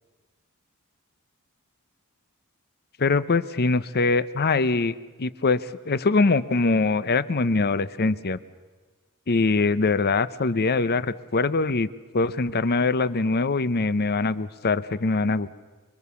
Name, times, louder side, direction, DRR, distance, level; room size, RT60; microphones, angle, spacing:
voice 1, 3.0-8.4 9.3-11.9 12.1-15.5, left 3 dB, 45° left, 15 dB, 0.7 m, -23 dB
26.5 x 23.0 x 7.0 m, 1.3 s
head